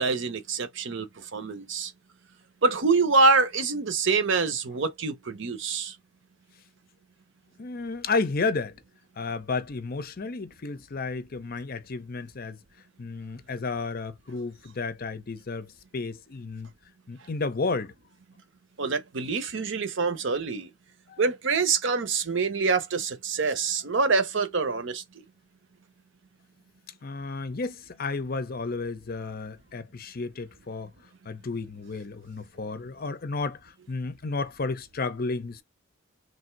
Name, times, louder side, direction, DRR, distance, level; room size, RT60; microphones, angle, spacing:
voice 1, 0.0-1.9 2.6-5.9 18.8-20.7 21.2-25.0, right 4 dB, 60° right, 0.7 m, -25 dB
voice 2, 7.6-8.8 9.2-12.6 13.0-16.7 17.1-17.9 21.1-21.2 27.0-30.9 31.3-35.6, left 3 dB, 45° left, 0.6 m, -32 dB
3.3 x 2.6 x 4.4 m
head